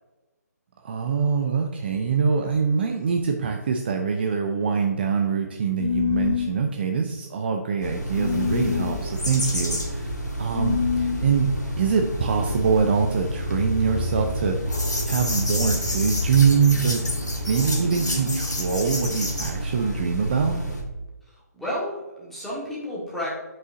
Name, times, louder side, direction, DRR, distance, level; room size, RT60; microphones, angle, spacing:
voice 1, 0.8-10.1 10.4-11.5 11.8-14.7 15.1-17.0 17.5-20.6, right 6 dB, 35° right, 4 dB, 0.5 m, -24 dB
sound 1, 5.8-6.5 8.1-9.0 10.5-11.3, left 7 dB, 55° left, 0.6 m, -25 dB
sound 2, 7.8-20.8, equal, 85° left, 1.6 m, -28 dB
voice 2, 21.3-23.3, left 1 dB, ahead, -6 dB, 1.5 m, -32 dB
7.9 x 5.5 x 2.6 m, 1.1 s
figure-of-eight pair, 140°, 9 cm